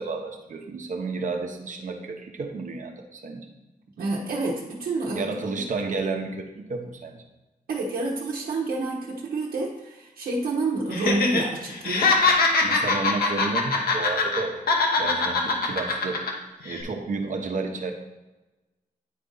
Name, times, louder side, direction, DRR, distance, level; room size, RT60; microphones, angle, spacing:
voice 1, 0.0-3.5 5.1-7.2 12.6-16.4 16.6-17.9, right 3 dB, 60° right, 3 dB, 1.0 m, -31 dB
voice 2, 4.0-5.6 7.7-12.1, right 2 dB, 80° right, -5 dB, 1.1 m, -28 dB
Laughter, 10.9-11.4 11.7-14.4 14.7-16.3 16.7-16.8, left 3 dB, 85° left, 1.1 m, -22 dB
9.3 x 4.1 x 3.9 m, 1.1 s
cardioid pair, 100°, 15 cm